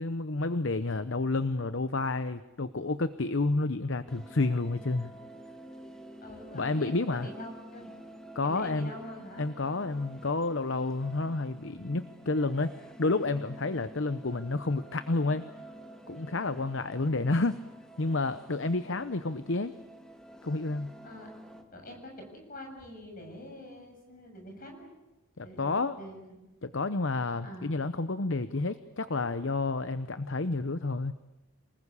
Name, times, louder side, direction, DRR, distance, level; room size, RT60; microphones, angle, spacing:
voice 1, 0.0-5.1 6.5-7.3 8.3-8.9 9.4-15.5 16.1-17.6 18.0-19.7 20.4-20.9 25.4-26.0 26.6-31.1, left 3 dB, 60° left, 13 dB, 0.8 m, -30 dB
sound 1, 4.1-21.6, right 1 dB, 5° left, 2.0 m, -50 dB
voice 2, 6.2-7.9 8.4-9.4 18.8-19.1 21.0-21.3 21.7-24.9 25.4-26.4 27.4-27.7, left 1 dB, 40° left, 2 dB, 7.4 m, -45 dB
28.5 x 20.5 x 8.4 m, 1.0 s
head